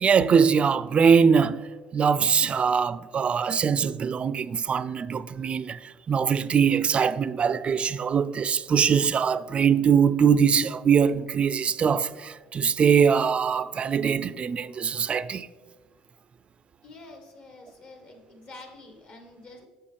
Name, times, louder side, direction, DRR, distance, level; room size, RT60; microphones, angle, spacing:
voice 1, 0.0-1.7 1.9-15.5, right 6 dB, 40° right, 0.3 m, -22 dB
voice 2, 16.8-19.7, left 2 dB, 60° left, 1.6 m, -47 dB
7.4 x 6.5 x 3.4 m
supercardioid pair, 80°, 3 cm